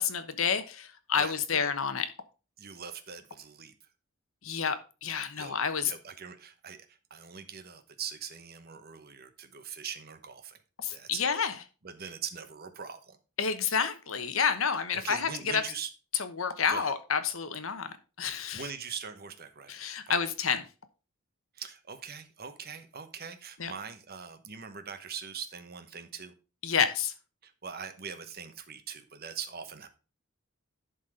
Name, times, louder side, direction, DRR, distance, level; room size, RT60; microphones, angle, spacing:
voice 1, 0.0-2.1 4.4-5.9 10.8-11.6 13.4-15.6 16.1-18.7 19.7-20.6 23.6-23.7 26.6-27.1, left 6 dB, 70° left, 10 dB, 1.1 m, -29 dB
voice 2, 1.2-1.7 2.6-3.7 5.4-5.6 5.8-10.6 10.9-11.3 11.8-13.2 14.9-15.9 16.7-16.9 18.5-19.7 20.1-20.3 21.5-26.3 27.4-29.9, right 6 dB, 45° right, 9 dB, 1.1 m, -42 dB
11.0 x 4.2 x 5.0 m, 0.33 s
head